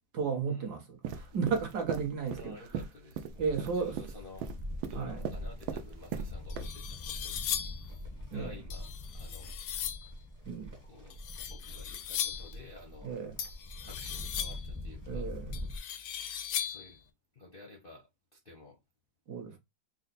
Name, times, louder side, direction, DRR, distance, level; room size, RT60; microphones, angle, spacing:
voice 1, 0.1-2.6 3.4-4.0 4.9-5.2 8.3-8.5 10.5-10.8 13.0-13.3 15.1-15.6 19.3-19.6, right 5 dB, 60° right, 1.3 m, -34 dB
sound 1, 1.0-6.3 6.6-6.7, right 7 dB, 85° right, 1.4 m, -38 dB
voice 2, 2.3-4.5 4.9-9.6 10.8-13.1 13.8-15.3 16.6-17.0 17.3-18.8, left 2 dB, 45° left, 0.7 m, -52 dB
Livestock farm animals working animals, 3.3-15.8, left 1 dB, 15° right, 0.7 m, -43 dB
sound 2, 6.0-6.1 6.5-7.9 8.7-10.1 11.1-12.6 13.4-14.8 15.5-16.9, left 10 dB, 80° left, 1.4 m, -38 dB
4.2 x 2.0 x 3.9 m
omnidirectional pair, 2.1 m